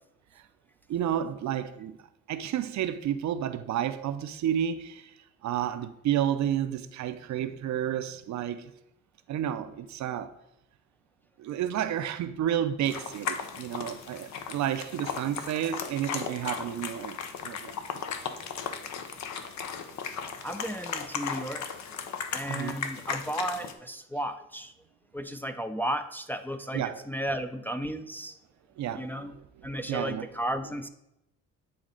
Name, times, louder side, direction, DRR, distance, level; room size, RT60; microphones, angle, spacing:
voice 1, 0.9-2.0 2.3-5.1 5.4-8.7 9.3-10.3 11.4-17.2 17.4-17.8 22.5-22.8 26.7-27.0 28.8-30.3, right 10 dB, 70° right, 0.6 m, -31 dB
sound 1, 12.8-23.7, left 7 dB, 70° left, 0.8 m, -36 dB
voice 2, 20.4-21.6 22.3-24.7 25.1-28.4 29.0-29.3 29.6-30.9, right 1 dB, 5° left, 0.4 m, -34 dB
8.9 x 4.0 x 3.8 m
cardioid pair, 90°, 30 cm